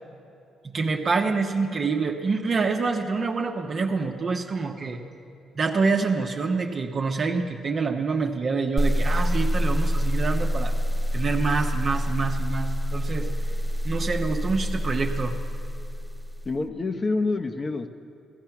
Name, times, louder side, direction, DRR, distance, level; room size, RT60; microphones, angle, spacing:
voice 1, 0.6-5.0 5.6-10.7 11.1-13.3 13.8-15.4, right 4 dB, 45° right, 2 dB, 1.0 m, -26 dB
sound 1, 8.8-16.6, equal, 5° left, 0.4 m, -26 dB
voice 2, 16.4-17.9, left 3 dB, 35° left, 7 dB, 0.9 m, -27 dB
15.0 x 14.5 x 5.9 m, 2.6 s
cardioid pair, 90°, 0 cm